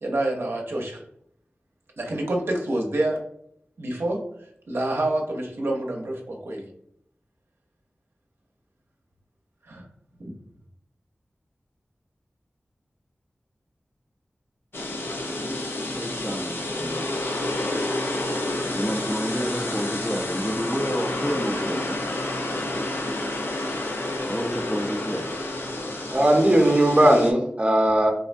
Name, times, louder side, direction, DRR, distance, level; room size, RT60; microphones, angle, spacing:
voice 1, 0.0-1.0 2.0-3.2 3.8-6.7 9.6-9.8 10.3-10.4, right 1 dB, 75° right, 0 dB, 0.6 m, -27 dB
sound 1, 14.7-27.3, left 1 dB, 70° left, 0.5 m, -29 dB
voice 2, 15.7-17.0 18.7-21.8 24.2-25.3, equal, 5° left, 3 dB, 0.4 m, -29 dB
voice 3, 26.1-28.1, right 1 dB, 30° right, 1 dB, 0.7 m, -18 dB
3.5 x 2.1 x 2.5 m, 0.70 s
wide cardioid pair, 60°, 4 cm